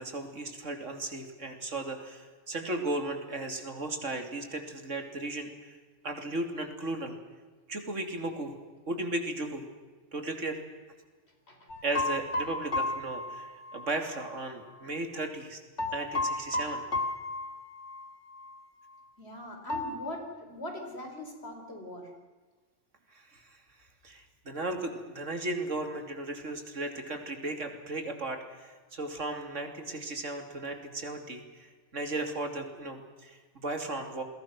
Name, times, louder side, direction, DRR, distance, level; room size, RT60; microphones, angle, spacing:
voice 1, 0.0-5.8 6.0-7.2 7.7-8.5 8.9-9.6 10.1-10.6 11.8-15.6 15.9-16.9 23.1-23.6 24.0-34.2, right 2 dB, 85° right, 5 dB, 3.2 m, -36 dB
sound 1, 11.7-14.3 15.8-18.1 18.3-18.5 19.7-19.9, left 2 dB, 75° left, 2.7 m, -33 dB
voice 2, 19.2-22.1, left 1 dB, 60° left, 3 dB, 4.9 m, -41 dB
30.0 x 21.0 x 6.2 m, 1.4 s
omnidirectional pair, 1.2 m